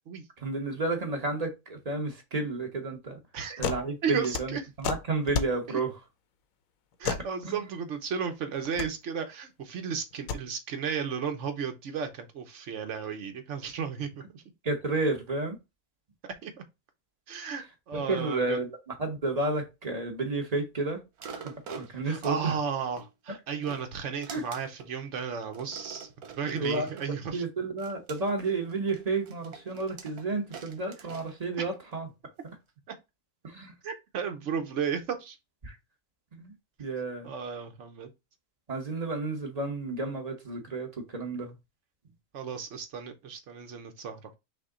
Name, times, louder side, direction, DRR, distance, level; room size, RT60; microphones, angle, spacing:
voice 1, 0.4-3.2 3.6-6.0 7.4-7.7 14.6-15.6 17.9-22.6 24.3-24.4 26.5-32.1 33.4-33.7 35.6-35.8 36.3-36.5 36.8-37.3 38.7-41.5, right 3 dB, 30° right, 0.9 m, -31 dB
sound 1, 3.6-3.9 4.1-5.6 7.0-7.3 8.6-8.9 10.1-10.4, left 6 dB, 70° left, 1.0 m, -31 dB
voice 2, 4.0-4.6 5.7-5.8 7.0-14.4 16.4-16.5 17.3-18.6 22.0-27.4 33.8-35.4 37.2-38.1 42.3-44.2, right 6 dB, 55° right, 1.1 m, -34 dB
sound 2, 21.2-23.1 23.5-24.9 25.5-27.1 27.8-32.0 32.5-32.6, right 6 dB, 80° right, 1.4 m, -46 dB
5.7 x 2.2 x 3.7 m
omnidirectional pair, 1.6 m